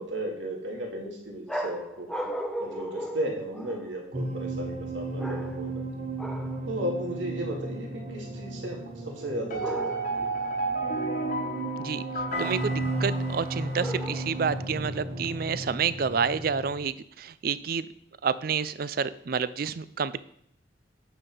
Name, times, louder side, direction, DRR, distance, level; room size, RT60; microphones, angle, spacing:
voice 1, 0.0-2.1 2.6-5.8 6.7-10.3, right 1 dB, 80° right, 1 dB, 2.3 m, -35 dB
sound 1, 1.5-4.0 5.2-5.8 6.2-6.6 9.6-10.3 13.8-14.5, equal, ahead, 0.6 m, -36 dB
sound 2, 4.1-16.9, right 2 dB, 35° right, 1.0 m, -35 dB
sound 3, 9.5-13.8, right 2 dB, 45° left, 1.3 m, -32 dB
voice 2, 12.4-17.9 18.2-20.2, right 6 dB, 50° right, 16 dB, 0.4 m, -29 dB
8.6 x 5.4 x 5.4 m, 0.69 s
head